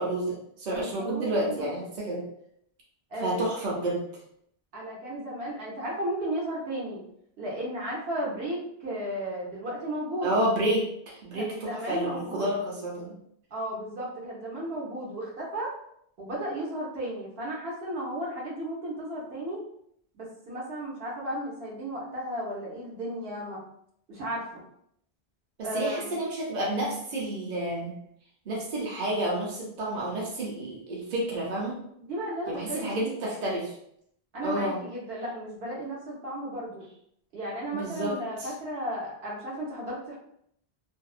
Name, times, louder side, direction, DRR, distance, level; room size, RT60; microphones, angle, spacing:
voice 1, 0.0-2.3 3.2-4.0 10.2-10.9 11.1-13.1 25.6-27.9 28.5-31.8 32.5-33.7 34.4-34.8 37.7-38.2, right 1 dB, 45° right, -4 dB, 0.7 m, -30 dB
voice 2, 0.7-1.7 3.1-3.5 4.7-7.0 7.4-10.3 11.3-12.5 13.5-15.7 16.2-19.6 20.1-23.6 24.1-24.6 25.6-26.1 32.1-33.2 34.3-36.8 37.3-40.2, right 1 dB, 70° right, -5 dB, 1.1 m, -34 dB
2.6 x 2.0 x 2.4 m, 0.70 s
omnidirectional pair, 1.1 m